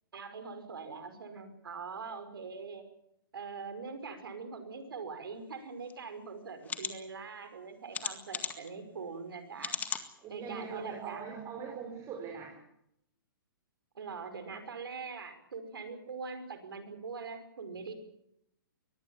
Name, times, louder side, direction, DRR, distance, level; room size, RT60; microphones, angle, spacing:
voice 1, 0.1-2.8 3.3-9.8 10.3-11.3 14.0-17.9, right 5 dB, 75° right, 9 dB, 5.3 m, -43 dB
sound 1, 5.9-6.0 6.6-6.9 7.9-8.7 9.6-10.1 10.6-10.7 11.1-11.2, left 7 dB, 15° left, 1.8 m, -36 dB
voice 2, 10.2-12.5 17.8-17.9, right 6 dB, 25° right, 1 dB, 5.7 m, -42 dB
23.5 x 19.5 x 7.3 m, 0.78 s
hypercardioid pair, 140°, 12 cm